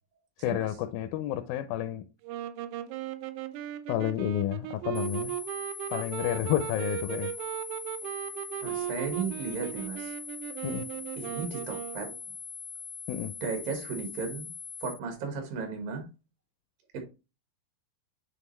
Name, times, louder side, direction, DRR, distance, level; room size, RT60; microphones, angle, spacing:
voice 1, 0.4-2.0 3.9-5.3 5.9-7.3 10.6-10.9 13.1-13.3, left 12 dB, 80° left, 2.2 m, -30 dB
sound 1, 2.2-12.2, right 13 dB, 90° right, 1.8 m, -37 dB
sound 2, 4.9-14.9, left 6 dB, 65° left, 1.0 m, -42 dB
voice 2, 8.6-10.1 11.2-12.1 13.4-14.5 14.8-16.1 16.9-17.0, right 5 dB, 70° right, 3.0 m, -35 dB
9.5 x 3.3 x 3.1 m
omnidirectional pair, 4.2 m